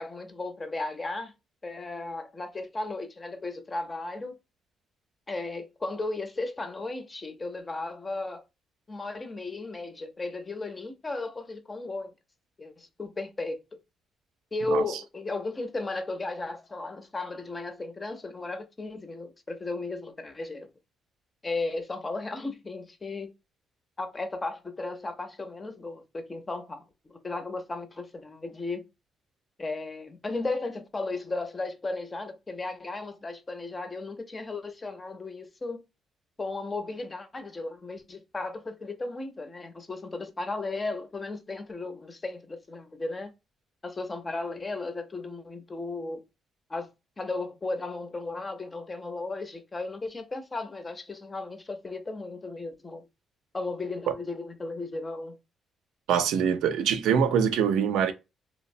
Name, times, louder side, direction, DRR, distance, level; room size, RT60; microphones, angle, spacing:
voice 1, 0.0-1.3 1.6-4.4 5.3-8.4 8.9-12.1 12.6-13.6 14.5-20.7 21.4-23.3 24.0-28.9 29.6-35.8 36.4-43.3 43.8-46.2 46.7-46.9 47.2-53.0 53.5-55.4, left 3 dB, 25° left, 0.6 m, -35 dB
voice 2, 56.1-58.1, right 7 dB, 90° right, 0.4 m, -24 dB
2.9 x 2.0 x 2.5 m
cardioid pair, 90°, 0 cm